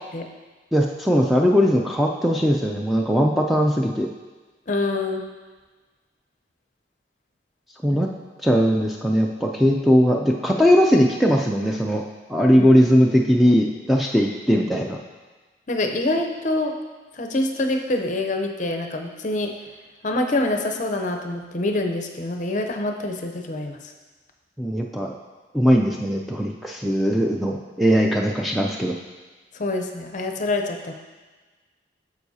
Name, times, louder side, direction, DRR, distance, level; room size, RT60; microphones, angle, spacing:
voice 1, 0.7-4.1 7.8-8.1 8.4-12.0 12.3-15.0 24.6-25.1 25.5-28.9, equal, ahead, 0 dB, 0.3 m, -19 dB
voice 2, 4.7-5.3 7.9-8.0 12.6-12.7 15.7-16.8 17.1-19.5 20.0-23.8 29.6-30.9, left 2 dB, 40° left, 4 dB, 0.6 m, -25 dB
9.4 x 6.9 x 2.8 m, 1.3 s
head